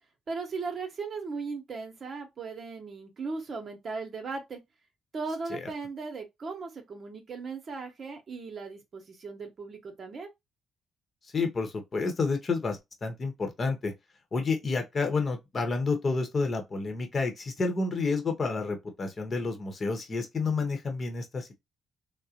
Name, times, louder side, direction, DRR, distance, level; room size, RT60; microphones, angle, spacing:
voice 1, 0.3-4.6 5.1-10.3, right 4 dB, 45° right, 0.9 m, -37 dB
voice 2, 11.3-13.9 14.3-21.6, left 4 dB, 40° left, 0.9 m, -30 dB
3.7 x 2.1 x 2.8 m
cardioid pair, 90°, 0 cm